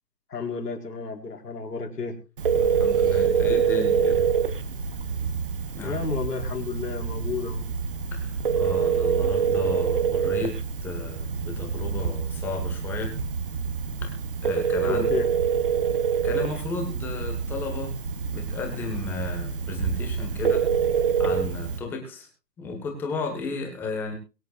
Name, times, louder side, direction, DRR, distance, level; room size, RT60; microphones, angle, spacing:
voice 1, 0.3-2.2 5.8-7.7 14.8-15.3, left 5 dB, 65° left, 1 dB, 4.8 m, -31 dB
Telephone, 2.4-21.8, right 7 dB, 30° right, 1.4 m, -26 dB
voice 2, 2.5-4.3 5.7-6.0 8.1-10.5 10.8-13.2 14.0-14.1 14.4-15.1 16.2-17.9 18.3-20.6 21.2-22.3 22.6-24.1, left 3 dB, 5° left, 3 dB, 1.5 m, -33 dB
23.0 x 9.3 x 2.5 m, 0.31 s
hypercardioid pair, 165°, 50 cm